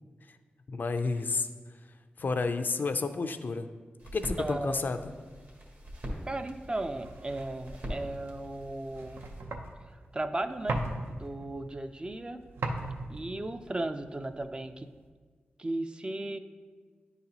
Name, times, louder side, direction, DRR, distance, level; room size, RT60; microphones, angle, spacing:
voice 1, 0.7-1.5 2.2-3.7 4.1-5.0, left 4 dB, 55° left, 9 dB, 0.4 m, -30 dB
sound 1, 4.0-9.4, equal, 60° right, 1.5 m, -42 dB
voice 2, 4.4-4.8 6.3-9.3 10.1-10.8 11.1-12.4 13.1-14.9 15.6-16.4, right 2 dB, 25° right, 8 dB, 0.4 m, -35 dB
sound 2, 6.3-15.1, right 2 dB, 85° right, 0.6 m, -40 dB
10.0 x 4.0 x 2.9 m, 1.5 s
cardioid pair, 70°, 4 cm